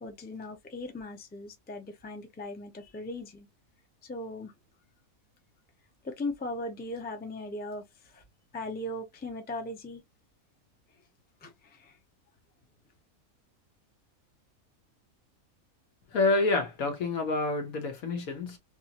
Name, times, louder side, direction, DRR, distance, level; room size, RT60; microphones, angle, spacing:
voice 1, 0.0-3.5 4.0-4.5 6.0-8.2 8.5-10.0 11.4-12.0, left 2 dB, 10° left, 0.4 m, -38 dB
voice 2, 16.1-18.6, left 2 dB, 80° left, 1.4 m, -28 dB
3.0 x 3.0 x 2.8 m
omnidirectional pair, 1.5 m